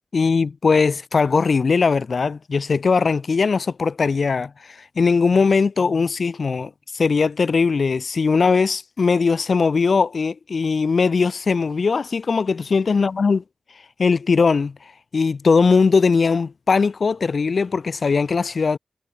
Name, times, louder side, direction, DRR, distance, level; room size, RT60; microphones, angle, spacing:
voice 1, 0.1-13.4 14.0-14.7 15.1-18.8, left 4 dB, 65° left, 0.4 m, -20 dB
wide cardioid pair, 115°, 0 cm